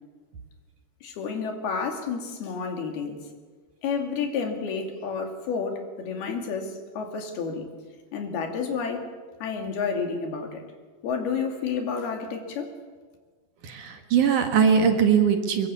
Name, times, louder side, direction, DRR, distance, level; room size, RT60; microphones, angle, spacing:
voice 1, 1.0-3.2 3.8-7.7 8.1-9.1 9.4-10.6 11.0-12.7, left 5 dB, 80° left, 4 dB, 4.5 m, -30 dB
voice 2, 13.6-15.7, right 7 dB, 60° right, 5 dB, 3.0 m, -21 dB
23.5 x 23.0 x 7.0 m, 1.5 s
omnidirectional pair, 4.4 m